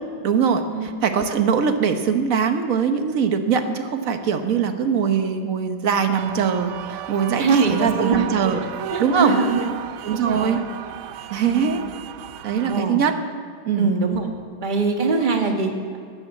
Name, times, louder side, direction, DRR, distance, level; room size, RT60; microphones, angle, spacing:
voice 1, 0.2-8.6 9.0-9.4 10.0-10.6 11.3-11.8 12.4-13.2 13.6-13.9, right 6 dB, 50° right, 7 dB, 1.1 m, -22 dB
sound 1, 6.1-12.8, right 11 dB, 75° right, 1.4 m, -34 dB
voice 2, 7.4-8.2 8.9-9.7 10.1-10.6 11.3-11.8 12.6-13.0 13.8-14.3 14.6-16.0, right 4 dB, 25° right, 2 dB, 1.5 m, -23 dB
13.5 x 9.5 x 7.7 m, 2.2 s
omnidirectional pair, 2.4 m